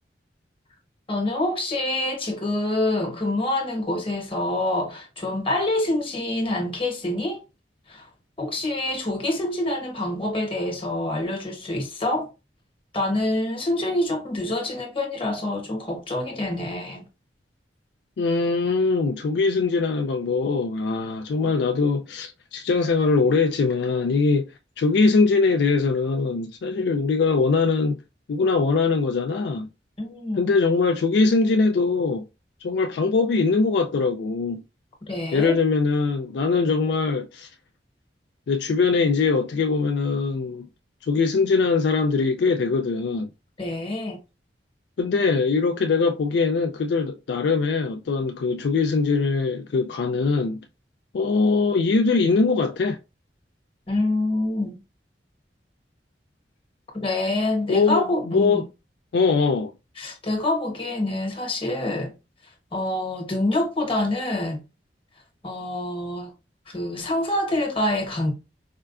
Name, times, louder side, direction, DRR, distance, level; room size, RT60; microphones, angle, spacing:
voice 1, 1.1-7.4 7.9-8.1 8.4-12.3 12.9-17.0 30.0-30.4 35.0-35.6 43.6-44.2 53.9-54.8 56.9-58.6 60.0-62.1 62.7-64.6 65.4-66.3 66.7-68.3, left 1 dB, 30° left, 1.0 m, -26 dB
voice 2, 18.2-24.5 24.8-28.0 28.3-29.7 30.4-32.2 32.6-34.6 35.3-37.5 38.5-40.7 41.1-43.3 45.0-50.6 51.1-53.0 57.7-58.6 59.1-59.7, left 4 dB, 70° left, 0.3 m, -22 dB
4.4 x 2.2 x 2.4 m
head